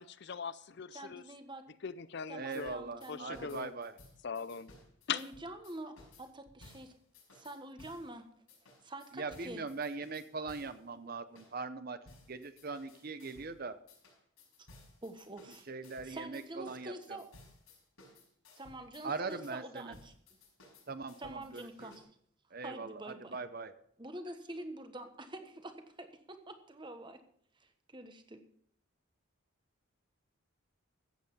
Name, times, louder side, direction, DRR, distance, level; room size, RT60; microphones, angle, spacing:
voice 1, 0.0-1.2 1.8-2.7 3.1-3.7 4.2-4.7 5.1-5.2, left 6 dB, 50° left, 0.5 m, -40 dB
voice 2, 0.9-1.6 2.3-3.5 5.1-6.9 7.3-8.3 8.8-9.6 15.0-15.6 16.0-17.2 18.6-20.1 21.2-22.0 22.6-23.4 24.0-27.2 27.6-28.4, right 1 dB, 20° right, 1.3 m, -46 dB
voice 3, 2.3-4.0 9.1-12.0 12.3-13.8 15.7-17.2 19.0-20.0 20.9-21.9 22.5-23.7, right 4 dB, 45° right, 0.8 m, -41 dB
sound 1, 2.5-8.1 8.5-10.8 11.4-11.5 12.1-13.6 13.9-22.0, left 2 dB, 90° left, 5.6 m, -59 dB
15.0 x 8.2 x 5.5 m
head